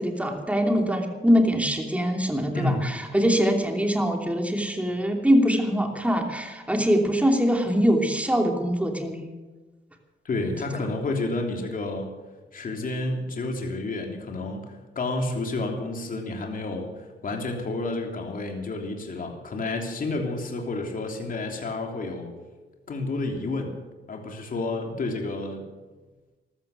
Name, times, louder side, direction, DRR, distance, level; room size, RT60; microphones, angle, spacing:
voice 1, 0.0-9.3 10.7-10.8, equal, 5° right, 3 dB, 2.9 m, -23 dB
voice 2, 2.5-2.8 10.2-12.1 12.5-22.3 22.9-23.8 24.1-25.6, left 2 dB, 45° left, 2 dB, 3.2 m, -30 dB
14.0 x 13.5 x 6.6 m, 1.2 s
cardioid pair, 90°, 20 cm